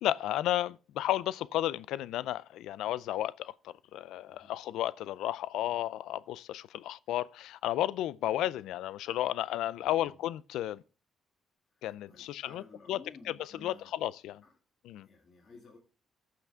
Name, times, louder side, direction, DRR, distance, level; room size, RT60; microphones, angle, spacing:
voice 1, 0.0-10.8 11.8-12.6 12.9-13.0 13.3-14.4 14.8-15.1, left 13 dB, 90° left, 0.4 m, -33 dB
voice 2, 9.8-10.2 11.8-13.9 14.4-14.5 15.0-15.8, left 3 dB, 45° left, 2.3 m, -54 dB
14.5 x 6.0 x 3.5 m
cardioid pair, 90°, 0 cm